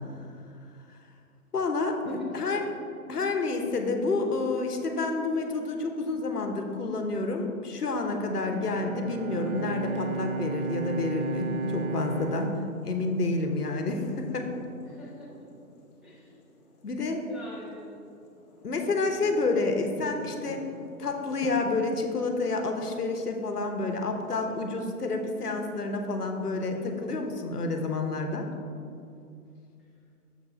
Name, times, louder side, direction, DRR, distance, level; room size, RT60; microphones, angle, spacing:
voice 1, 1.5-2.7 3.1-12.5 12.8-14.5 16.8-17.3 18.6-20.6 21.0-28.5, left 3 dB, 85° left, 4 dB, 1.1 m, -29 dB
voice 2, 2.1-2.6 14.8-15.3 16.0-16.4 17.2-18.1, left 1 dB, ahead, -9 dB, 0.9 m, -46 dB
Bowed string instrument, 8.2-13.6, right 3 dB, 65° right, 0.8 m, -34 dB
sound 1, 9.3-27.2, left 2 dB, 25° left, 0.9 m, -50 dB
6.9 x 5.6 x 4.3 m, 2.5 s
hypercardioid pair, 140°, 46 cm